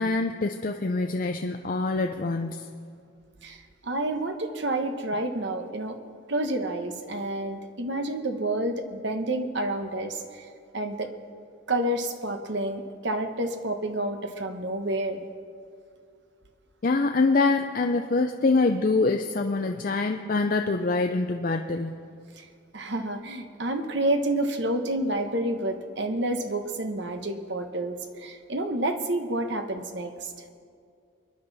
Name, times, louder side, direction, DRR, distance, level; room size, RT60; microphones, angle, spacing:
voice 1, 0.0-2.7 16.8-22.0, left 3 dB, 40° left, 5 dB, 0.5 m, -25 dB
voice 2, 3.8-6.0 6.3-10.5 10.7-11.1 11.7-15.2 22.4-22.5 22.7-30.3, right 1 dB, 55° right, 6 dB, 1.1 m, -29 dB
25.0 x 10.5 x 4.1 m, 2.2 s
head